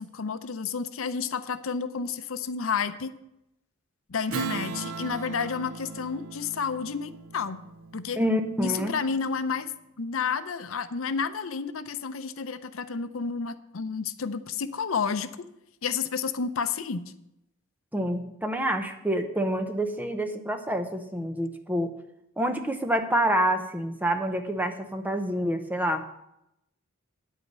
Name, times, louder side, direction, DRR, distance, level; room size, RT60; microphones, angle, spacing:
voice 1, 0.0-3.1 4.1-7.6 7.9-8.2 8.6-9.7 10.0-15.3 15.8-17.1, left 5 dB, 70° left, 12 dB, 0.6 m, -30 dB
Strum, 4.3-9.2, right 5 dB, 80° right, 0.6 m, -38 dB
voice 2, 8.2-9.0 17.9-21.9 22.4-26.0, right 1 dB, 10° right, 6 dB, 0.8 m, -27 dB
9.7 x 8.3 x 5.5 m, 0.83 s
head